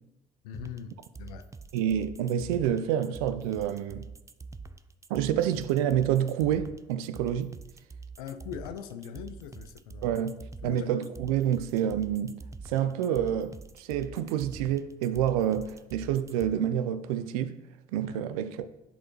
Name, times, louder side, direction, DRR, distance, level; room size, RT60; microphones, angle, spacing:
voice 1, 0.4-1.5 8.2-10.2 10.6-11.1 18.0-18.3, left 8 dB, 80° left, 0.5 m, -42 dB
sound 1, 0.5-16.5, right 4 dB, 15° right, 0.4 m, -45 dB
voice 2, 1.7-4.0 5.1-7.6 10.0-10.4 10.6-12.4 12.7-17.6 17.9-18.7, right 10 dB, 80° right, 0.4 m, -28 dB
9.9 x 4.0 x 3.1 m
hypercardioid pair, 55°, 19 cm